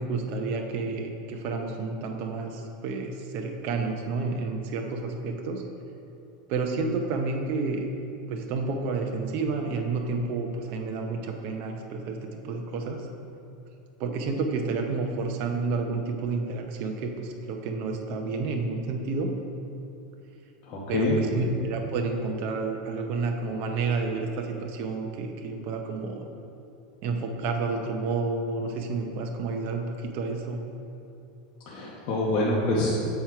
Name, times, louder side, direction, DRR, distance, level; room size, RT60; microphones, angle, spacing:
voice 1, 0.0-5.6 6.5-7.9 8.3-13.0 14.0-19.3 20.9-26.3 27.0-30.6, right 4 dB, 45° right, 3 dB, 0.6 m, -30 dB
voice 2, 20.7-21.2 31.7-32.9, left 2 dB, 40° left, -6 dB, 1.0 m, -26 dB
7.5 x 4.4 x 4.7 m, 2.7 s
supercardioid pair, 150°, 5 cm